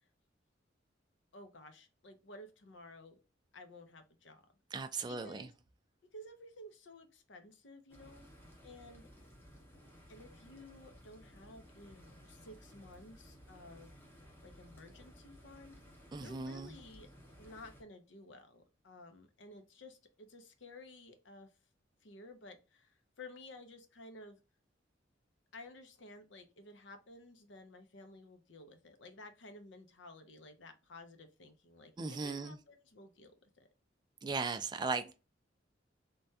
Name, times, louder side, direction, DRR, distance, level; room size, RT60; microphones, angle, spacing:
voice 1, 1.3-3.2 3.5-4.4 5.1-5.5 6.1-8.3 8.6-9.1 10.1-15.8 16.2-17.1 17.4-21.5 22.0-24.4 25.5-33.7, left 2 dB, 70° left, 0.6 m, -54 dB
voice 2, 4.7-5.5 16.1-16.7 32.0-32.6 34.2-35.1, right 4 dB, 25° right, 0.3 m, -37 dB
sound 1, 7.9-17.8, equal, 10° left, 0.7 m, -57 dB
3.3 x 2.2 x 2.6 m
head